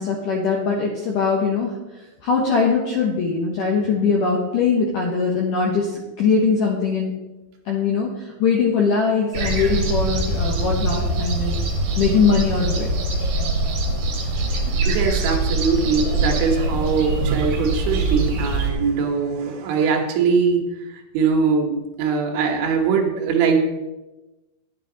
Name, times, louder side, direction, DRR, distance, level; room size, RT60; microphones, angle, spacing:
voice 1, 0.0-1.8 2.2-7.1 7.7-11.6 12.0-12.9, left 5 dB, 75° left, -1 dB, 2.0 m, -21 dB
sound 1, 9.3-18.7, right 2 dB, 60° right, 2.5 m, -23 dB
voice 2, 14.9-23.6, right 5 dB, 80° right, 2 dB, 3.6 m, -21 dB
11.0 x 9.0 x 3.9 m, 1.0 s
omnidirectional pair, 5.3 m